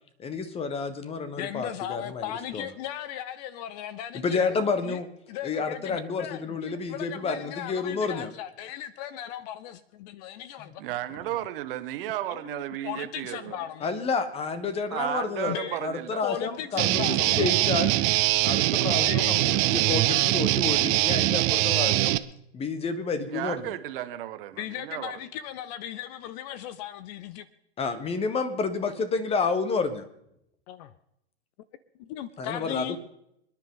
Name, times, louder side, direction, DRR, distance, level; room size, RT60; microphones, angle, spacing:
voice 1, 0.2-2.7 4.1-5.1 5.4-8.3 10.6-10.7 13.8-17.9 18.4-22.2 22.5-23.8 27.8-30.1 32.4-33.0, left 4 dB, 15° left, 1.3 m, -30 dB
voice 2, 1.4-4.5 4.9-5.0 5.3-6.4 6.7-10.7 12.8-13.9 15.5-15.8 16.2-17.5 18.9-19.6 24.6-27.4 30.7-30.9 32.1-33.0, left 11 dB, 35° left, 0.6 m, -37 dB
voice 3, 10.8-13.7 14.9-16.2 23.3-25.2, right 14 dB, 50° right, 1.2 m, -34 dB
Guitar, 16.8-22.2, right 19 dB, 25° right, 0.4 m, -23 dB
27.0 x 10.5 x 3.8 m
hypercardioid pair, 135°, 34 cm